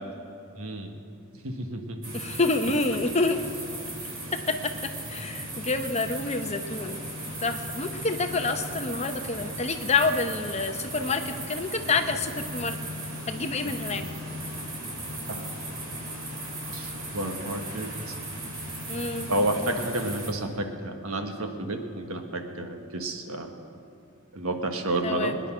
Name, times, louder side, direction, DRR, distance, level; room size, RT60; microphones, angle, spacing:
voice 1, 0.6-1.0 1.4-2.1 13.6-13.7 15.3-15.4 16.7-17.9 19.3-23.5 24.3-25.4, right 1 dB, 80° right, 5 dB, 1.5 m, -30 dB
sound 1, 2.0-20.3, right 1 dB, 65° right, 3.6 m, -36 dB
voice 2, 2.1-3.4 4.3-7.0 7.4-12.8 13.3-14.0 18.9-19.3 25.0-25.4, left 3 dB, 30° left, 7 dB, 0.8 m, -28 dB
22.0 x 10.0 x 6.1 m, 2.7 s
head